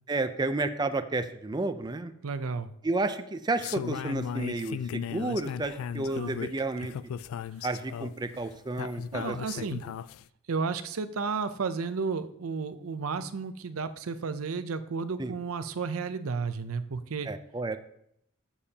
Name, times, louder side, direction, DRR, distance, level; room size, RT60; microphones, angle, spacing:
voice 1, 0.1-2.1 2.8-6.9 7.6-9.7 15.2-15.3 17.3-17.8, right 2 dB, 20° right, 9 dB, 0.5 m, -31 dB
voice 2, 2.2-2.7 6.1-6.3 9.1-9.8 10.5-17.3, right 5 dB, 90° right, 11 dB, 0.6 m, -32 dB
sound 1, 3.6-10.2, left 8 dB, 75° left, 0.3 m, -36 dB
13.5 x 7.2 x 2.8 m, 0.72 s
head